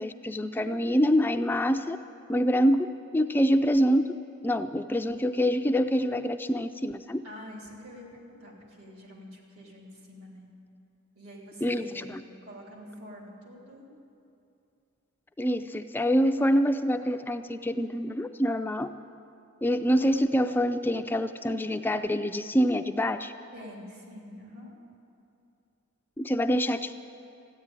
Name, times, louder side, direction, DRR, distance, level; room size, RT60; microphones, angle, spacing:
voice 1, 0.0-2.0 2.3-2.9 3.1-4.1 4.4-7.2 11.6-12.2 15.4-18.9 19.6-23.3 26.2-26.9, equal, 10° left, 8 dB, 0.3 m, -25 dB
voice 2, 7.2-10.5 11.1-13.9 23.5-24.8, equal, 75° right, -1 dB, 3.3 m, -46 dB
14.5 x 10.0 x 8.9 m, 2.7 s
head